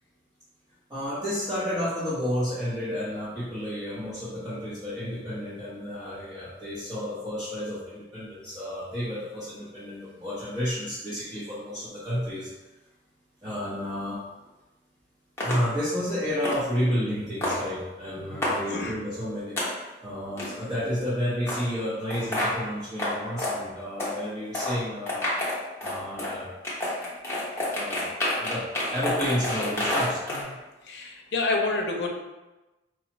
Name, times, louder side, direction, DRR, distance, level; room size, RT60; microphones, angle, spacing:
voice 1, 0.9-12.5 13.4-14.2 15.4-19.6 20.0-25.3 25.8-26.5 27.7-28.1 28.4-28.6 28.9-30.2, equal, 20° right, -14 dB, 1.1 m, -31 dB
sound 1, 15.4-15.6 16.4-16.6 17.4-17.6 18.4-18.6 19.6-19.7 20.4-20.6 21.5-21.6 22.1-22.5 23.0-23.1 23.4-23.5 24.0-24.1 24.5-24.7 25.1-26.3 26.6-30.4, left 1 dB, 15° left, 0.7 m, -28 dB
voice 2, 18.2-19.0 30.3-30.6 30.8-32.1, left 3 dB, 65° left, 1 dB, 0.5 m, -29 dB
4.7 x 2.4 x 3.0 m, 1.1 s
head